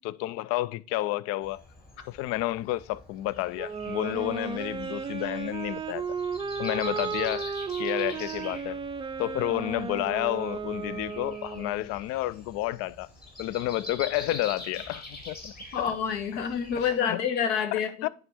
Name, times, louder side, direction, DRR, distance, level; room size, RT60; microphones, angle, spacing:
voice 1, 0.0-1.6 2.1-6.0 6.6-8.8 9.2-13.1 13.4-15.9 16.8-17.2 18.0-18.1, left 16 dB, 45° left, 0.4 m, -30 dB
Breathing, 1.4-17.0, left 2 dB, 30° left, 3.5 m, -45 dB
Wind instrument woodwind instrument, 3.5-11.9, right 6 dB, 15° right, 0.4 m, -34 dB
voice 2, 15.7-18.1, left 7 dB, 65° left, 1.4 m, -28 dB
9.6 x 3.6 x 4.3 m
hypercardioid pair, 80°, 33 cm